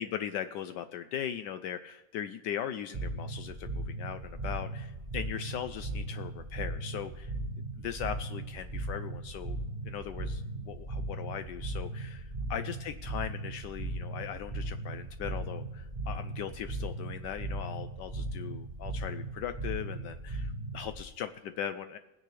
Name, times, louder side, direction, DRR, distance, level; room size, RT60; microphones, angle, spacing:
voice 1, 0.0-7.3 7.8-9.6 9.8-22.0, left 9 dB, 75° left, 10 dB, 1.1 m, -39 dB
sound 1, 2.9-21.0, right 2 dB, 35° right, 0.8 m, -38 dB
21.0 x 9.8 x 3.3 m, 1.0 s
omnidirectional pair, 2.0 m